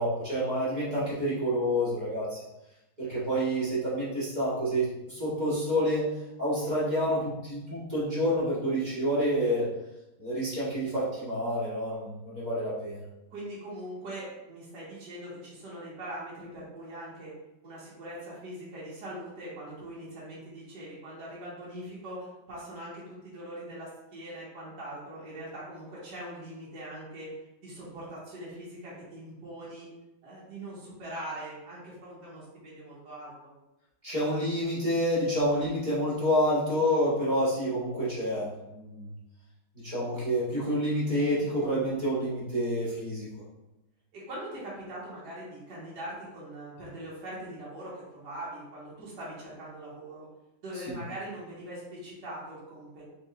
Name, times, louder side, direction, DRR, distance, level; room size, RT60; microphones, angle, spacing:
voice 1, 0.0-2.4 3.0-6.1 6.4-9.7 10.2-13.0 34.0-39.1 39.7-43.3 50.8-51.0, equal, 25° right, -9 dB, 1.2 m, -28 dB
voice 2, 13.3-17.3 17.6-27.4 27.6-29.9 30.2-33.5 44.1-50.3 50.6-53.0, right 1 dB, 60° right, -8 dB, 1.9 m, -42 dB
5.2 x 3.8 x 2.4 m, 0.94 s
omnidirectional pair, 2.2 m